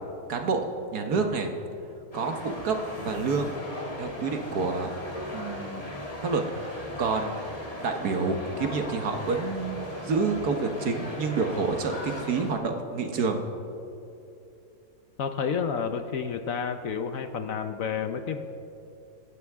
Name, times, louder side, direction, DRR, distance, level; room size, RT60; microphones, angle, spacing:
voice 1, 0.3-0.6 0.9-1.5 2.1-3.5 4.0-4.9 5.3-5.9 6.2-7.3 7.8-13.4, right 4 dB, 65° right, 5 dB, 1.7 m, -28 dB
sound 1, 2.1-12.5, left 1 dB, 20° left, 1.9 m, -38 dB
voice 2, 15.2-18.4, left 6 dB, 60° left, 8 dB, 1.0 m, -30 dB
26.5 x 12.5 x 3.6 m, 2.7 s
omnidirectional pair, 1.8 m